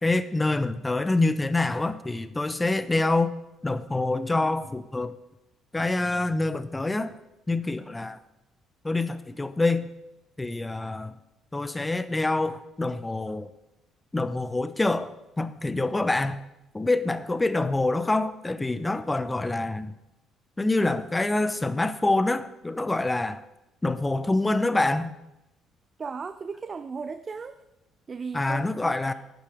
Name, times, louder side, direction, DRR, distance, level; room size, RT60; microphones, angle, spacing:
voice 1, 0.0-3.3 3.6-5.2 5.7-7.1 7.5-8.2 8.8-9.9 10.4-11.1 11.5-13.5 14.1-16.4 16.7-19.9 20.6-23.4 23.8-25.1 28.3-29.1, left 2 dB, 15° left, 14 dB, 0.8 m, -26 dB
voice 2, 26.0-27.6 28.1-29.1, right 5 dB, 35° right, 12 dB, 0.5 m, -36 dB
11.5 x 9.2 x 5.0 m, 0.93 s
figure-of-eight pair, 45°, 0 cm